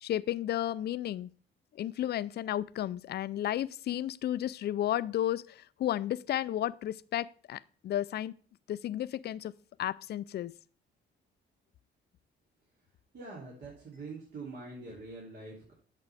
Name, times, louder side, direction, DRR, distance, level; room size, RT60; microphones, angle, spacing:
voice 1, 0.0-1.3 1.7-8.3 8.7-9.5 9.8-10.5, left 12 dB, 55° left, 0.4 m, -33 dB
voice 2, 13.1-15.7, right 3 dB, 60° right, 3.0 m, -44 dB
9.0 x 6.6 x 3.4 m
cardioid pair, 90°, 20 cm